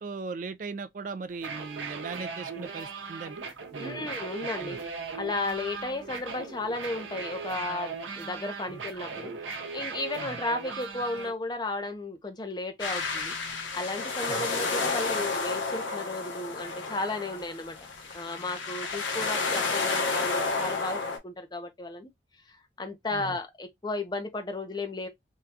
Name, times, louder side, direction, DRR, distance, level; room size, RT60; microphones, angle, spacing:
voice 1, 0.0-3.4 3.7-4.1 4.6-4.8 8.7-8.8 10.2-10.4 14.3-14.5 23.1-23.4, right 4 dB, 45° right, 0.3 m, -39 dB
sound 1, 1.3-11.3, right 4 dB, 85° right, 0.7 m, -38 dB
voice 2, 3.8-4.8 5.1-13.3 13.7-17.8 18.1-22.1 22.5-25.1, left 2 dB, 25° left, 0.5 m, -34 dB
sound 2, 12.8-21.2, left 4 dB, 85° left, 0.9 m, -31 dB
3.6 x 2.3 x 2.7 m
head